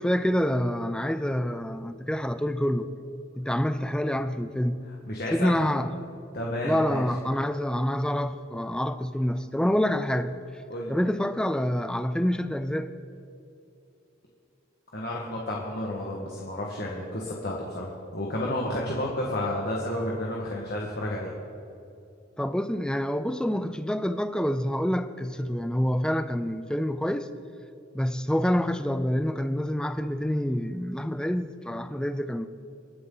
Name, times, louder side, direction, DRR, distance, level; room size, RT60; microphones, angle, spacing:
voice 1, 0.0-2.9 3.4-4.8 5.3-5.9 6.6-10.4 10.9-12.9 22.4-27.3 27.9-32.5, equal, 5° left, 0.4 m, -27 dB
voice 2, 4.9-5.6 6.3-7.0 10.7-10.9 14.9-21.3, left 1 dB, 50° left, 1.7 m, -31 dB
28.5 x 9.6 x 4.0 m
head